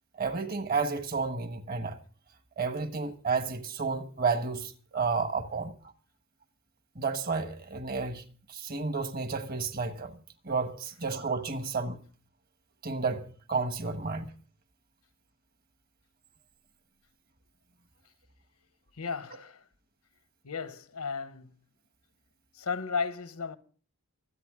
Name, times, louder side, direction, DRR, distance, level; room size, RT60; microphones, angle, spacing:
voice 1, 0.2-2.0 2.6-5.7 6.9-8.2 8.5-10.1 10.4-12.0 12.8-14.3, right 4 dB, 40° right, 1.3 m, -31 dB
voice 2, 19.0-19.6 20.4-21.5 22.5-23.6, left 5 dB, 90° left, 1.1 m, -34 dB
25.0 x 9.0 x 3.7 m
head